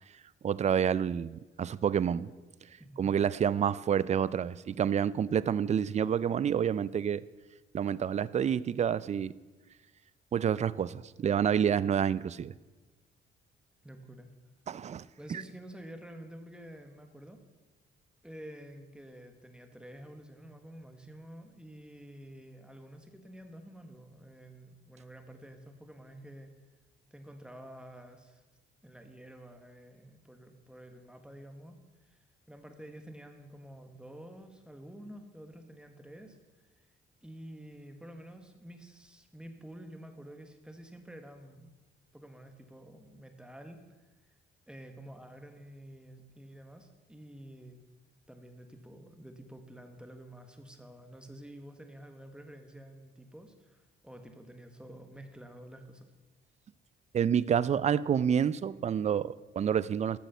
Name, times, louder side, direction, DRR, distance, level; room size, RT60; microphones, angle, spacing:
voice 1, 0.4-2.3 3.0-7.2 7.7-9.3 10.3-12.5 14.7-15.0 15.3-15.4 57.1-60.2, right 8 dB, 35° right, 0.4 m, -28 dB
voice 2, 13.8-14.3 15.2-17.4 18.2-26.5 27.1-28.4 28.8-31.7 32.0-32.2 32.5-36.4 37.2-41.7 42.1-44.3 44.7-47.8 48.3-56.1, right 1 dB, 5° right, 1.3 m, -49 dB
14.0 x 6.3 x 5.6 m
cardioid pair, 90°, 20 cm